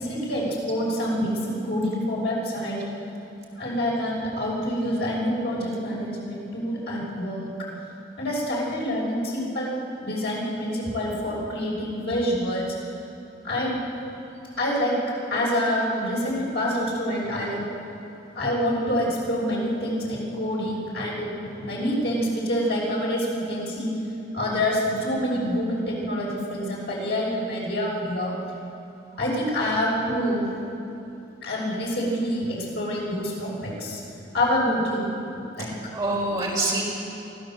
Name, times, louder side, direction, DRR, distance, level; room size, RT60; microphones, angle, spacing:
voice 1, 0.0-2.8 3.6-7.5 8.2-9.7 10.0-12.7 13.4-13.8 14.6-14.9 15.3-17.6 18.3-23.9 24.3-28.3 29.2-30.5 31.4-34.0 34.3-35.1 35.6-35.7, equal, 65° left, -4 dB, 6.3 m, -26 dB
voice 2, 35.6-36.8, right 2 dB, 20° right, -3 dB, 4.8 m, -26 dB
24.5 x 15.0 x 7.7 m, 2.8 s
head